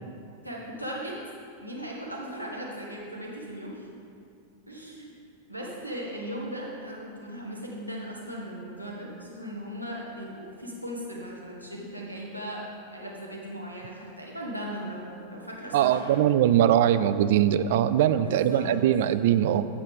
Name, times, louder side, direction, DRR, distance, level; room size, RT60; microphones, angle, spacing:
voice 1, 0.4-1.2 1.6-3.9 4.7-5.2 5.5-12.6 12.9-16.2 18.2-18.7, equal, 90° right, -3 dB, 1.4 m, -38 dB
voice 2, 15.7-19.7, right 11 dB, 55° right, 12 dB, 0.3 m, -21 dB
9.6 x 8.0 x 3.7 m, 2.4 s
figure-of-eight pair, 90°, 0 cm